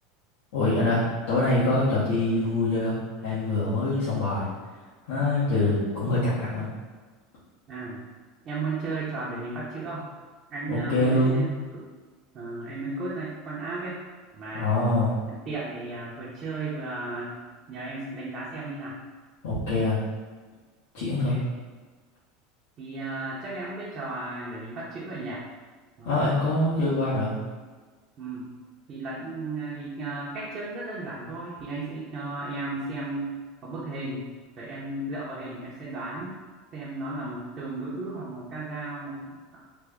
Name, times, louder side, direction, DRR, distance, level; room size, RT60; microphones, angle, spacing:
voice 1, 0.5-3.0 3.2-4.5 5.1-6.7 10.7-11.4 14.5-15.2 19.4-20.0 20.9-21.4 26.0-27.4, left 2 dB, 75° left, -12 dB, 1.1 m, -24 dB
voice 2, 7.7-8.0 8.4-10.0 10.5-11.8 12.3-14.0 14.3-14.7 15.3-17.4 17.7-19.0 21.2-21.4 22.8-25.4 26.0-26.4 28.2-28.5 28.9-33.3 33.6-34.3 34.6-36.4 36.7-39.6, right 2 dB, 35° right, -7 dB, 0.6 m, -34 dB
3.3 x 2.1 x 3.5 m, 1.4 s
supercardioid pair, 145°, 0 cm